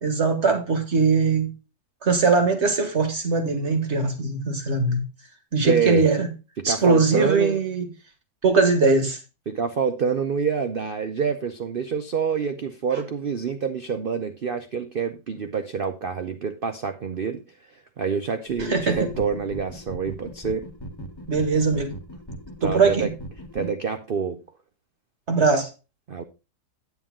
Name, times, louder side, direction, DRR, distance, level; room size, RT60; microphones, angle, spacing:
voice 1, 0.0-1.5 2.0-5.0 5.5-6.3 6.6-7.9 8.4-9.2 18.6-19.0 21.3-21.9 22.6-23.1 25.3-25.7, right 4 dB, 40° right, 1.7 m, -21 dB
voice 2, 5.6-6.0 6.6-7.6 9.5-17.4 17.7-20.7 22.6-23.1 23.5-24.4 26.1-26.2, right 6 dB, 80° right, 0.5 m, -27 dB
sound 1, 18.5-23.7, equal, 15° left, 1.0 m, -38 dB
8.7 x 8.4 x 3.7 m
omnidirectional pair, 1.8 m